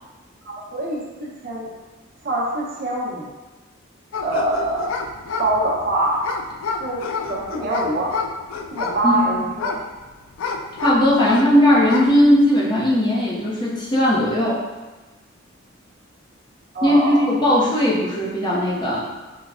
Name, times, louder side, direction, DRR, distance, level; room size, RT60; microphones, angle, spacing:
voice 1, 0.4-1.7 2.2-3.3 4.2-4.9 5.4-6.2 6.8-7.0 7.3-8.1 8.7-9.8 11.4-11.5 16.7-17.3, right 1 dB, 50° right, -4 dB, 0.6 m, -24 dB
sound 1, 4.1-11.5 11.8-12.2, left 4 dB, 85° left, 0.3 m, -29 dB
voice 2, 10.8-14.6 16.8-19.0, equal, 20° left, -6 dB, 0.5 m, -18 dB
4.6 x 2.1 x 2.4 m, 1.2 s
head